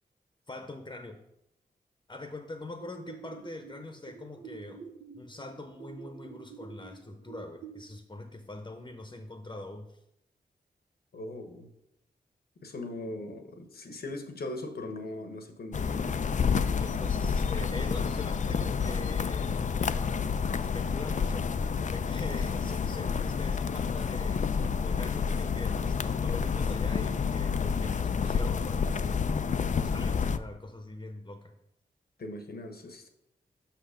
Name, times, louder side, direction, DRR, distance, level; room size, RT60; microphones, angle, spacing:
voice 1, 0.5-1.2 2.1-4.8 5.1-10.0 16.8-19.7 20.7-21.5 21.8-29.2 29.8-31.5, left 2 dB, 25° left, 6 dB, 0.9 m, -43 dB
sound 1, 2.8-7.8, right 6 dB, 65° right, 0.8 m, -48 dB
voice 2, 11.1-11.7 12.6-16.2 32.2-33.1, left 2 dB, 65° left, 6 dB, 1.1 m, -40 dB
sound 2, 15.7-30.4, left 6 dB, 45° left, 0.4 m, -29 dB
5.8 x 5.8 x 5.0 m, 0.82 s
cardioid pair, 45°, 17 cm